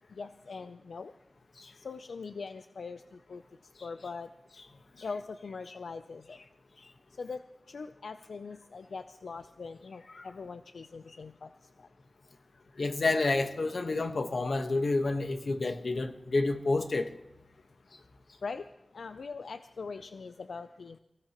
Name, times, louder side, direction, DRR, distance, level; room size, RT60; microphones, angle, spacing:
voice 1, 0.1-1.1 1.7-4.3 5.0-6.4 7.1-11.9 17.8-17.9 18.4-18.7 18.9-21.0, left 4 dB, 80° left, 0.5 m, -42 dB
voice 2, 12.8-17.1, left 3 dB, 60° left, 1.2 m, -29 dB
24.5 x 16.5 x 3.0 m
wide cardioid pair, 110°, 0 cm